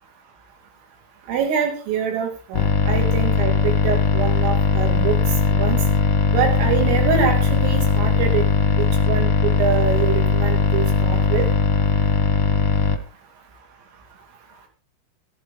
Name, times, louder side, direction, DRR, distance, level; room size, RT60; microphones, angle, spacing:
voice 1, 1.3-5.2 5.5-5.8 6.3-8.4 9.1-11.5, right 7 dB, 75° right, 4 dB, 5.5 m, -25 dB
sound 1, 2.5-13.0, left 6 dB, 65° left, 1.4 m, -19 dB
14.0 x 14.0 x 4.1 m, 0.33 s
omnidirectional pair, 5.9 m